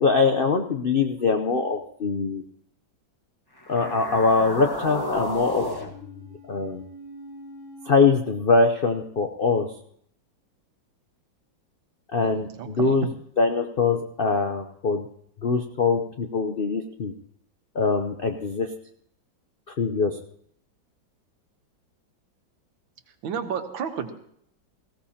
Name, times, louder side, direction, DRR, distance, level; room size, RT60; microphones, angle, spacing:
voice 1, 0.0-2.4 3.7-6.8 7.9-9.7 12.1-13.1 13.4-15.1 15.4-17.1 17.7-18.7 19.7-20.2, left 4 dB, 70° left, 5 dB, 0.5 m, -23 dB
sound 1, 3.6-7.9, left 1 dB, 15° left, 1.1 m, -34 dB
voice 2, 12.2-13.0 23.2-24.1, right 7 dB, 90° right, 7 dB, 1.9 m, -32 dB
19.0 x 16.0 x 2.8 m, 0.67 s
omnidirectional pair, 2.1 m